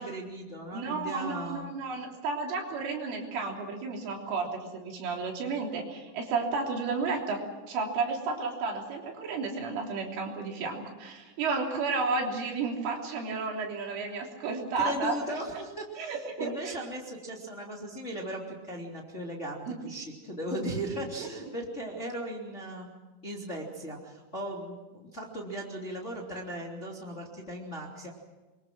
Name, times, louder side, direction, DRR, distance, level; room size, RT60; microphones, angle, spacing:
voice 1, 0.0-1.7 14.8-22.9 23.2-28.1, right 1 dB, 20° left, -1 dB, 2.6 m, -37 dB
voice 2, 0.7-15.6 16.0-16.8 19.7-19.9 21.2-21.5, right 4 dB, 80° right, 0 dB, 5.9 m, -32 dB
27.5 x 23.0 x 6.1 m, 1.2 s
omnidirectional pair, 5.6 m